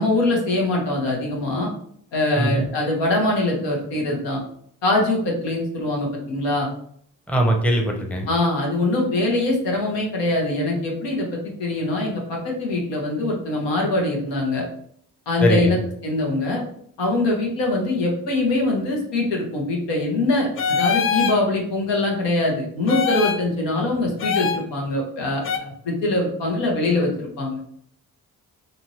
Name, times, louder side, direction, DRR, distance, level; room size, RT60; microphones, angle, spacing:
voice 1, 0.0-1.7 2.1-4.4 4.8-6.7 8.3-14.6 15.3-16.6 17.0-27.6, left 2 dB, 80° left, -1 dB, 0.9 m, -23 dB
voice 2, 2.4-2.7 7.3-8.3 15.4-15.7, right 1 dB, 5° left, 1 dB, 0.7 m, -20 dB
sound 1, 20.6-21.4 22.9-23.4 24.2-24.6 25.4-25.6, left 6 dB, 35° left, 0.4 m, -22 dB
2.7 x 2.6 x 3.0 m, 0.66 s
hypercardioid pair, 45°, 43 cm